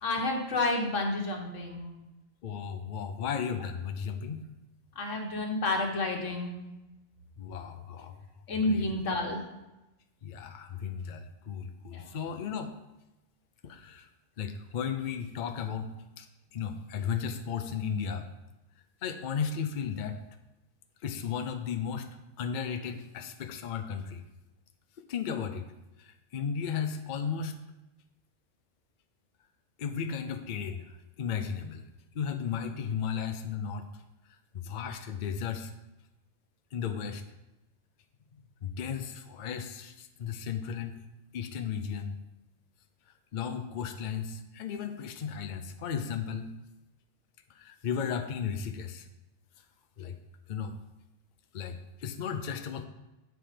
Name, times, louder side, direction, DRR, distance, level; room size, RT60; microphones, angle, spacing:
voice 1, 0.0-2.0 5.0-6.6 8.5-9.4 11.9-12.2, left 2 dB, 80° left, 2 dB, 1.6 m, -30 dB
voice 2, 2.4-4.4 7.4-8.1 8.5-8.9 10.2-12.7 13.6-14.1 14.4-15.9 16.2-16.3 16.5-18.3 19.0-20.2 21.0-22.1 22.4-24.2 25.1-25.7 26.0-27.5 29.8-30.8 31.2-31.8 32.1-33.9 34.5-35.7 36.7-37.2 38.6-41.0 41.3-42.2 43.3-46.5 47.5-49.0 50.0-50.2 50.5-50.7 51.5-52.8, left 7 dB, 50° left, 6 dB, 0.6 m, -35 dB
7.9 x 4.5 x 5.0 m, 0.98 s
omnidirectional pair, 1.3 m